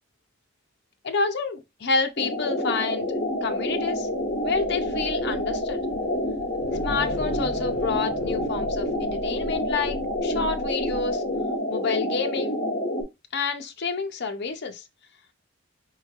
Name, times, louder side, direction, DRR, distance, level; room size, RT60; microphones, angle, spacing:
voice 1, 1.0-4.1 4.4-5.8 6.8-11.2 11.7-12.6 13.3-14.8, left 4 dB, 50° left, 0.6 m, -29 dB
sound 1, 2.2-13.0, left 1 dB, 35° left, 1.2 m, -28 dB
sound 2, 3.1-11.5, left 1 dB, 75° left, 0.9 m, -39 dB
4.5 x 3.1 x 2.4 m
head